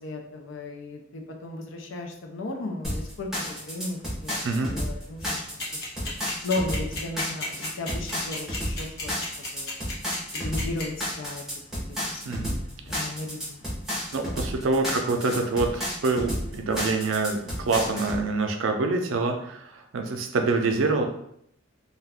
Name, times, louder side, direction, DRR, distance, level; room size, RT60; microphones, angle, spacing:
voice 1, 0.0-4.4 4.7-5.4 6.0-6.1 6.4-9.1 9.5-9.7 10.3-11.4 12.1-12.6 12.9-13.6, left 2 dB, 80° left, 2 dB, 0.5 m, -35 dB
sound 1, 2.8-18.2, equal, ahead, 0.8 m, -32 dB
voice 2, 4.4-4.8 12.2-12.6 14.1-21.0, right 3 dB, 85° right, 4 dB, 0.4 m, -26 dB
sound 2, 5.6-10.8, left 3 dB, 55° left, 0.8 m, -33 dB
2.4 x 2.2 x 3.4 m, 0.72 s
head